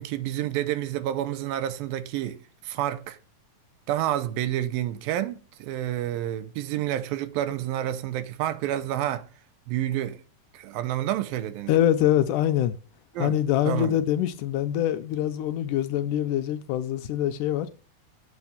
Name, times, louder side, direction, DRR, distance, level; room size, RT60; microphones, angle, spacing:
voice 1, 0.0-2.4 2.6-3.2 3.9-9.3 9.7-10.2 10.5-11.7 13.2-13.3 13.6-14.0, right 12 dB, 85° right, 2.6 m, -29 dB
voice 2, 11.7-12.8 13.2-17.7, left 11 dB, 80° left, 2.0 m, -24 dB
8.1 x 7.3 x 7.0 m
omnidirectional pair, 4.0 m